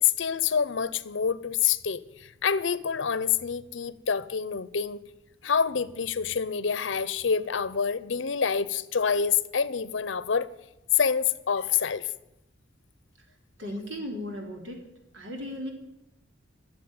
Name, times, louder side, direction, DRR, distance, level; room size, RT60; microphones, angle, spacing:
voice 1, 0.0-5.0 5.4-10.5 10.9-12.1, left 7 dB, 75° left, 0.7 m, -27 dB
voice 2, 13.6-14.9 15.1-15.7, left 1 dB, 90° right, 3.5 m, -36 dB
14.0 x 7.5 x 9.6 m
head